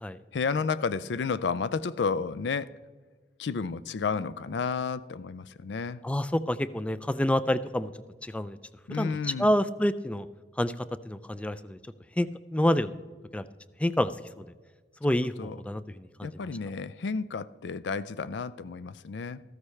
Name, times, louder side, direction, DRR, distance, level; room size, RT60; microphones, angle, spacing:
voice 1, 0.3-2.7 3.4-6.0 8.9-9.5 15.4-15.6 16.2-19.4, left 5 dB, 80° left, 0.4 m, -31 dB
voice 2, 6.0-7.9 8.2-8.6 9.0-9.1 9.4-10.3 10.6-10.7 11.1-11.8 12.2-12.3 12.5-12.9 13.3-13.4 13.8-14.1 14.4-14.5 15.0-15.8 16.2-16.3, left 1 dB, 5° left, 0.3 m, -27 dB
14.0 x 13.0 x 3.3 m
head